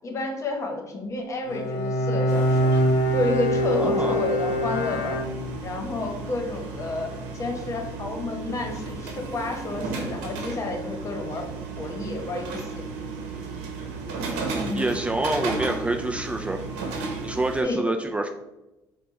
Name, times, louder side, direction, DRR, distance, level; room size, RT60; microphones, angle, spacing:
voice 1, 0.0-2.7 3.1-5.2 5.6-11.5 11.8-12.8 14.5-14.9 17.6-17.8, left 2 dB, 40° left, 2 dB, 1.1 m, -30 dB
Bowed string instrument, 1.5-5.8, equal, 80° left, 0.6 m, -24 dB
sound 1, 2.3-17.6, right 3 dB, 90° right, 0.8 m, -34 dB
voice 2, 3.7-4.3 14.8-16.6 17.2-18.3, right 2 dB, 15° right, 4 dB, 0.3 m, -27 dB
4.5 x 2.3 x 4.1 m, 0.98 s
supercardioid pair, 80°, 8 cm